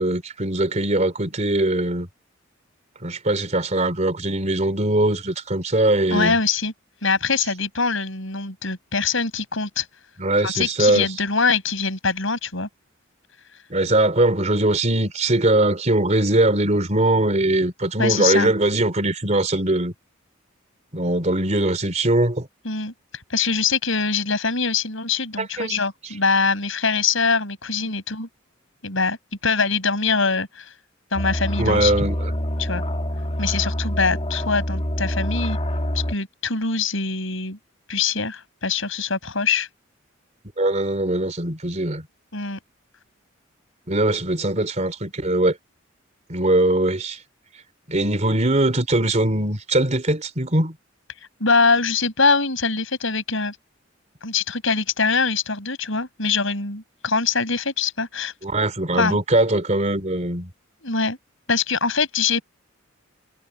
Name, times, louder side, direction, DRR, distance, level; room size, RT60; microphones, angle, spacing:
voice 1, 0.0-2.1 3.0-6.4 10.2-11.1 13.7-19.9 20.9-22.5 25.4-25.8 31.6-32.2 40.6-42.1 43.9-45.6 46.3-47.2 47.9-50.8 58.4-60.5, right 1 dB, 35° right, 3.3 m, -21 dB
voice 2, 6.1-6.7 7.0-9.8 10.4-12.7 18.0-18.5 22.6-22.9 23.3-28.3 28.8-29.2 29.4-30.7 31.1-31.9 32.6-32.8 33.4-35.6 35.9-37.6 37.9-39.7 42.3-42.6 51.4-53.5 54.2-58.3 59.0-59.2 60.8-61.2 61.5-62.4, left 4 dB, 70° left, 7.9 m, -23 dB
sound 1, 31.1-36.1, equal, 30° left, 1.8 m, -26 dB
head